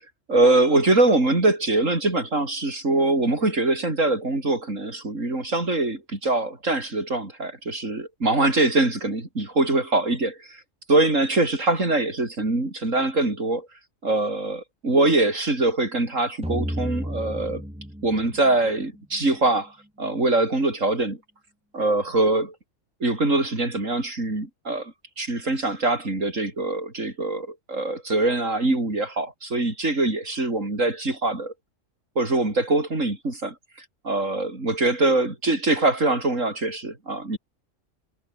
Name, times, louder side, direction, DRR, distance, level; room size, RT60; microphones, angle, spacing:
voice 1, 0.3-10.6 10.9-13.7 14.0-17.6 18.0-19.7 20.0-21.2 21.7-22.5 23.0-31.5 32.2-33.6 34.0-37.4, right 2 dB, 85° right, 5.4 m, -23 dB
sound 1, 16.4-19.4, equal, 5° right, 7.6 m, -32 dB
omnidirectional pair, 1.3 m